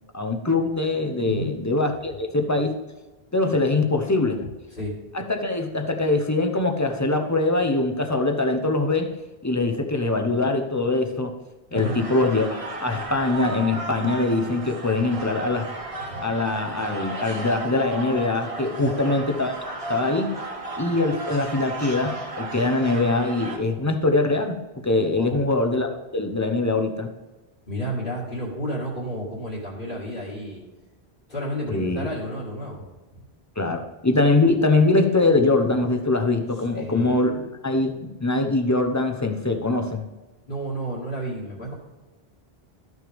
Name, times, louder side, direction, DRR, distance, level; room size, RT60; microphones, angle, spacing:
voice 1, 0.1-2.8 3.3-4.4 5.1-9.1 9.4-11.3 11.7-15.7 16.2-19.5 19.9-20.3 20.8-27.1 31.7-32.1 33.6-40.0, left 2 dB, 20° left, 4 dB, 0.8 m, -23 dB
voice 2, 1.2-1.6 4.4-5.0 11.7-12.0 16.1-16.2 18.8-19.0 25.1-25.4 27.7-30.6 31.3-32.8 36.7-37.3 40.5-41.7, equal, 55° left, -5 dB, 2.4 m, -31 dB
sound 1, 11.8-23.6, right 2 dB, 35° right, 1.2 m, -35 dB
13.0 x 6.3 x 3.5 m, 1.2 s
omnidirectional pair, 1.0 m